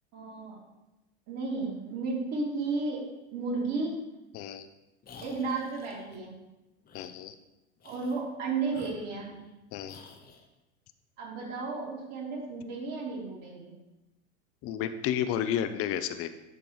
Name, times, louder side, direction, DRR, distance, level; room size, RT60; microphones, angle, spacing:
voice 1, 0.1-0.6 1.3-3.0 3.3-3.9 5.2-6.3 7.8-9.3 11.2-13.7, right 3 dB, 50° right, -3 dB, 2.6 m, -33 dB
voice 2, 4.3-4.7 6.9-7.3 9.7-10.0 14.6-16.3, left 10 dB, 40° left, 11 dB, 0.6 m, -31 dB
sound 1, 5.0-6.2 6.8-7.1 7.8-8.3 8.7-9.5 9.9-10.5, left 4 dB, 25° left, 0.9 m, -51 dB
10.5 x 3.8 x 3.1 m, 0.97 s
hypercardioid pair, 105°, 35 cm